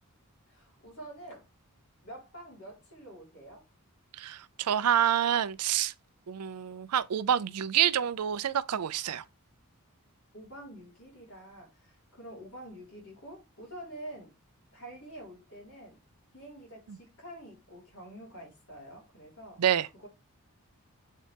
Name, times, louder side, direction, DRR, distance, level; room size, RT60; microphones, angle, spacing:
voice 1, 0.5-1.5 2.0-3.6 10.3-14.3 14.7-16.0 16.3-19.6 19.9-20.1, right 1 dB, 70° left, 4.1 m, -47 dB
voice 2, 4.1-5.9 6.3-9.2 16.9-17.0 19.6-19.9, right 10 dB, 90° right, 0.5 m, -27 dB
7.4 x 4.2 x 3.4 m
head